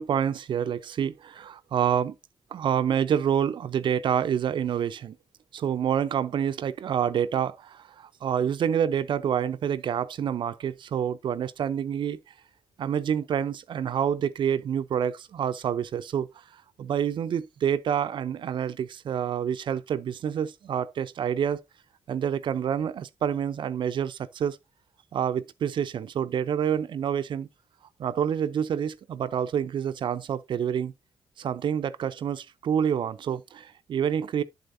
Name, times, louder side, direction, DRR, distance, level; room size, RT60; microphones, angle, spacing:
voice 1, 0.0-2.1 2.5-5.2 5.5-12.2 12.8-16.3 16.8-21.6 22.1-24.6 25.1-27.5 28.0-30.9 31.4-34.4, right 8 dB, 65° right, 0.5 m, -27 dB
7.9 x 7.4 x 2.6 m
supercardioid pair, 50°, 9 cm